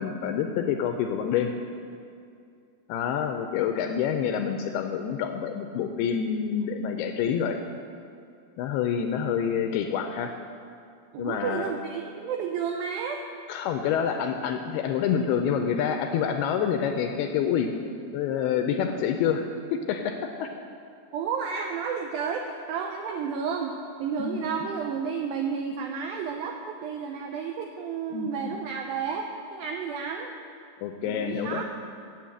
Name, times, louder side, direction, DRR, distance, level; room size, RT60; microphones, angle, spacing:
voice 1, 0.0-1.5 2.9-7.6 8.6-10.3 11.2-11.7 13.5-19.4 19.7-20.5 24.2-24.5 28.1-28.6 30.8-31.6, left 8 dB, 85° left, 5 dB, 2.3 m, -27 dB
voice 2, 11.1-13.2 21.1-23.7 24.0-30.3 31.1-31.6, right 6 dB, 85° right, 3 dB, 2.1 m, -31 dB
9.3 x 7.5 x 8.6 m, 2.4 s
omnidirectional pair, 5.0 m